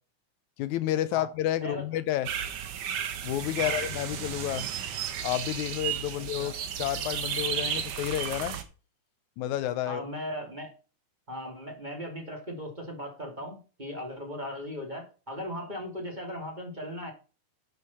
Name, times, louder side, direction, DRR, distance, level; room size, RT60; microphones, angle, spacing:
voice 1, 0.6-2.3 3.2-4.7 5.2-6.5 6.8-8.6 9.4-10.1, left 13 dB, 80° left, 2.1 m, -30 dB
sound 1, 2.3-8.6, right 9 dB, 80° right, 2.9 m, -33 dB
voice 2, 6.1-6.5 9.9-10.7 11.3-17.1, equal, 15° right, 3.2 m, -38 dB
11.0 x 6.5 x 5.7 m
omnidirectional pair, 3.5 m